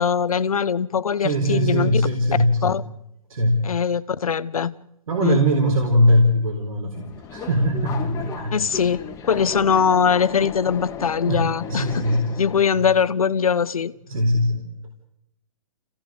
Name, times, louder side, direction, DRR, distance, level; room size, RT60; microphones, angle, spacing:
voice 1, 0.0-2.0 2.6-2.8 3.6-4.7 5.2-5.4 8.5-12.1 12.4-13.9, left 7 dB, 90° left, 16 dB, 0.9 m, -21 dB
voice 2, 1.2-2.8 3.3-3.6 5.1-8.6 11.3-11.4 11.7-12.4 12.7-12.8 14.1-14.7, equal, 80° right, 1 dB, 4.2 m, -21 dB
Subway metro underground, 6.9-12.6, left 7 dB, 15° left, 1.9 m, -35 dB
27.0 x 16.5 x 7.7 m, 0.80 s
hypercardioid pair, 140°, 18 cm